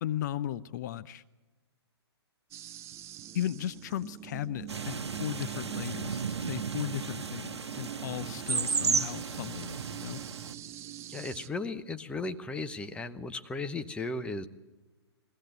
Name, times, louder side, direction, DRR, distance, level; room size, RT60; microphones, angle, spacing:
voice 1, 0.0-1.2 3.3-10.2, left 12 dB, 40° left, 14 dB, 0.6 m, -36 dB
sound 1, 2.5-11.5, right 13 dB, 20° right, 0.6 m, -44 dB
sound 2, 4.7-10.5, right 5 dB, 75° right, 1.1 m, -34 dB
voice 2, 11.1-14.5, left 3 dB, 10° left, 10 dB, 0.8 m, -36 dB
22.0 x 16.0 x 8.2 m, 1.2 s
figure-of-eight pair, 125°, 14 cm